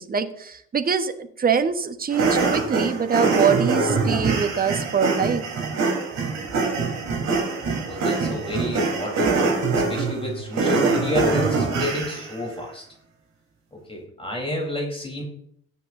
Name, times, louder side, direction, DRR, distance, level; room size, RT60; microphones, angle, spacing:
voice 1, 0.0-5.4, right 6 dB, 25° right, 9 dB, 1.1 m, -24 dB
sound 1, 2.1-12.3, right 4 dB, 45° right, 3.8 m, -24 dB
voice 2, 7.8-9.6 9.9-12.8 13.9-15.2, left 1 dB, 15° left, 0 dB, 3.8 m, -30 dB
21.0 x 8.3 x 2.7 m, 0.66 s
figure-of-eight pair, 60°, 39 cm